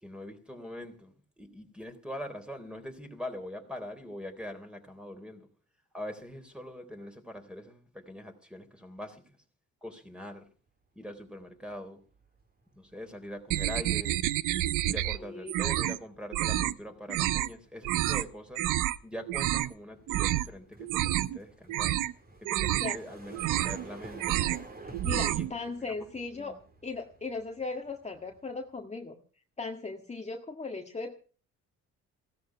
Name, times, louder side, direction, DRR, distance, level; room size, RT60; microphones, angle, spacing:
voice 1, 0.0-5.5 5.9-9.4 9.8-10.4 10.9-12.0 12.7-14.2 14.8-18.7 19.0-22.0 22.4-24.2 25.0-25.5 25.8-26.6, left 1 dB, 5° right, 3.7 m, -43 dB
sound 1, 11.4-11.7 12.1-28.8, right 2 dB, 30° right, 3.8 m, -52 dB
sound 2, 13.5-15.2 15.5-16.0 16.3-16.7 17.1-17.5 17.8-18.2 18.6-19.0 19.3-19.7 20.1-20.5 20.8-21.4 21.7-22.1 22.5-23.0 23.3-23.9 24.2-24.6 24.9-25.5, right 14 dB, 90° right, 0.7 m, -29 dB
voice 2, 15.2-15.6 22.7-23.0 24.8-26.6 26.8-29.2 29.6-31.1, left 3 dB, 20° left, 1.8 m, -38 dB
16.5 x 13.0 x 5.8 m
cardioid pair, 90°, 30 cm